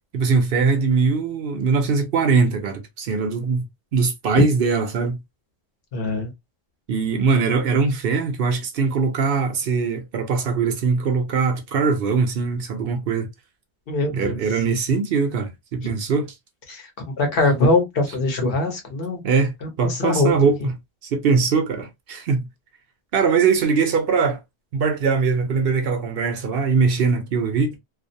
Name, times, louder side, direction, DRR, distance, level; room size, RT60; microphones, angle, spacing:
voice 1, 0.1-3.6 3.9-5.2 6.9-13.3 14.1-16.3 19.2-20.7 21.1-22.5 23.1-24.4 24.7-27.7, right 5 dB, 65° right, 0.8 m, -21 dB
voice 2, 5.9-6.3 13.9-14.4 15.8-15.9 16.7-19.2 19.6-20.5, left 2 dB, 60° left, 1.0 m, -22 dB
2.4 x 2.0 x 2.5 m
omnidirectional pair, 1.1 m